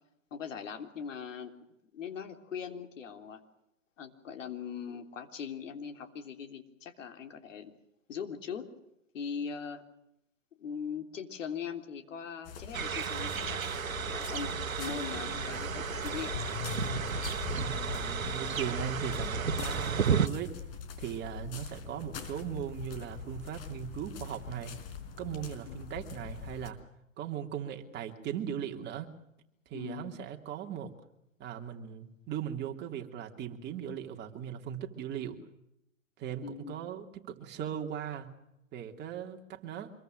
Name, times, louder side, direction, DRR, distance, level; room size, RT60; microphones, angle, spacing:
voice 1, 0.3-1.5 1.9-3.4 4.0-7.7 8.1-8.7 9.1-9.8 10.6-13.8 14.1-16.4 16.9-17.3 25.7-25.9 29.7-30.2 36.4-36.8, left 7 dB, 70° left, 6 dB, 3.6 m, -41 dB
sound 1, 12.4-26.7, left 6 dB, 45° left, 4.5 m, -41 dB
sound 2, 12.7-20.3, right 7 dB, 80° right, 1.5 m, -33 dB
voice 2, 17.5-20.5 21.0-24.7 25.2-26.8 27.2-29.1 29.7-30.9 31.4-35.4 36.2-38.3 38.7-39.9, right 9 dB, 25° right, 3 dB, 3.0 m, -38 dB
26.0 x 22.5 x 6.6 m, 0.82 s
hypercardioid pair, 120°, 40 cm